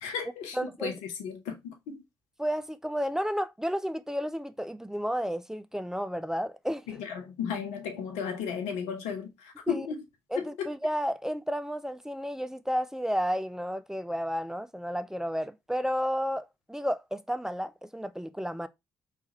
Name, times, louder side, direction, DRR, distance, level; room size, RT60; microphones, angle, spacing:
voice 1, 0.0-2.0 6.9-10.0 10.4-10.7, left 7 dB, 70° left, 0.7 m, -34 dB
voice 2, 0.5-0.9 2.4-6.9 9.7-9.9 10.3-18.7, equal, 5° right, 0.3 m, -32 dB
3.1 x 2.3 x 2.8 m
hypercardioid pair, 40°, 12 cm